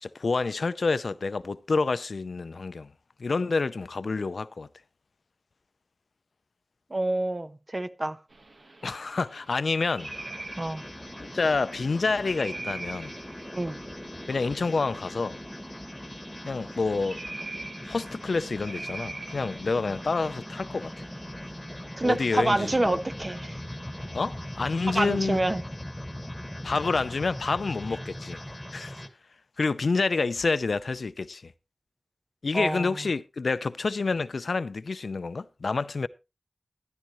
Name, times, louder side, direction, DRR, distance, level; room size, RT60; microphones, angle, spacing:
voice 1, 0.0-2.9 3.2-4.7 8.8-10.1 11.2-13.1 14.3-15.4 16.4-17.2 17.8-20.9 22.0-23.0 24.1-25.4 26.6-28.4 28.7-29.0 29.6-31.5 32.4-36.1, left 4 dB, 85° left, 0.5 m, -28 dB
voice 2, 6.9-8.2 10.6-10.8 13.5-13.8 22.0-23.6 24.9-25.6 32.5-33.0, right 1 dB, 40° right, 0.9 m, -27 dB
sound 1, 8.3-25.5, right 3 dB, 70° right, 1.4 m, -45 dB
sound 2, 10.0-29.1, left 1 dB, 10° left, 1.8 m, -40 dB
13.0 x 12.0 x 3.1 m
wide cardioid pair, 55°, 0 cm